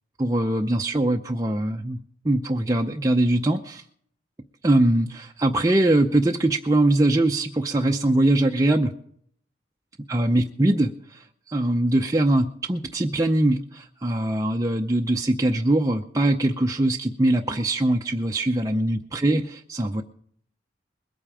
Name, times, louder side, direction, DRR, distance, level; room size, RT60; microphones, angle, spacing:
voice 1, 0.2-2.0 2.2-3.8 4.6-8.9 10.1-20.0, right 1 dB, 20° right, 2 dB, 0.6 m, -22 dB
21.0 x 8.9 x 4.9 m, 0.62 s
head